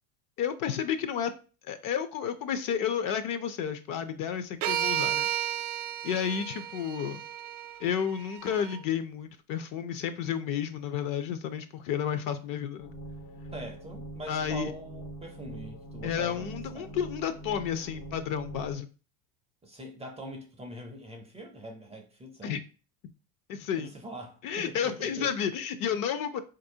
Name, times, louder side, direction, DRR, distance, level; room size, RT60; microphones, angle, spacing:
voice 1, 0.4-1.3 1.6-5.3 6.0-7.2 7.8-12.9 14.3-14.7 16.0-18.9 22.4-22.6 23.5-23.9 24.4-26.4, left 8 dB, 45° left, 0.5 m, -31 dB
sound 1, 4.6-8.8, right 11 dB, 70° right, 0.6 m, -33 dB
sound 2, 12.8-18.8, right 1 dB, 90° left, 1.1 m, -43 dB
voice 2, 13.5-17.0 19.6-22.6 23.7-25.4, right 1 dB, 15° right, 0.4 m, -43 dB
4.2 x 2.6 x 2.7 m
hypercardioid pair, 95°, 47 cm